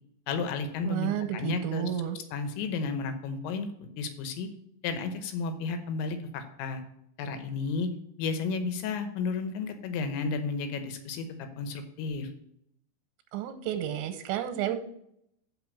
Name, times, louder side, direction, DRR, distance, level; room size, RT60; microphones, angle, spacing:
voice 1, 0.3-1.9 2.3-4.5 4.8-6.8 7.2-7.9 8.2-12.3, left 4 dB, 85° left, 7 dB, 3.3 m, -32 dB
voice 2, 0.8-2.2 13.3-14.8, right 11 dB, 85° right, 7 dB, 2.9 m, -31 dB
6.0 x 6.0 x 7.1 m, 0.74 s
omnidirectional pair, 5.1 m